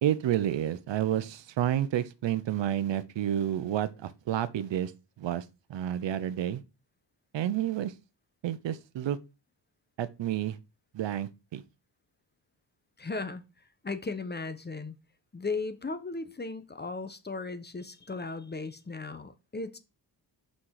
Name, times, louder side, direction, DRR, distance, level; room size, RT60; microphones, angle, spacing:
voice 1, 0.0-4.9 5.2-5.4 5.7-6.6 7.3-7.9 8.4-9.2 10.0-10.6 10.9-11.6, right 11 dB, 80° right, 0.9 m, -30 dB
voice 2, 13.0-13.4 13.8-14.9 15.3-19.8, left 3 dB, 25° left, 1.1 m, -36 dB
6.2 x 5.7 x 4.8 m
cardioid pair, 100°, 44 cm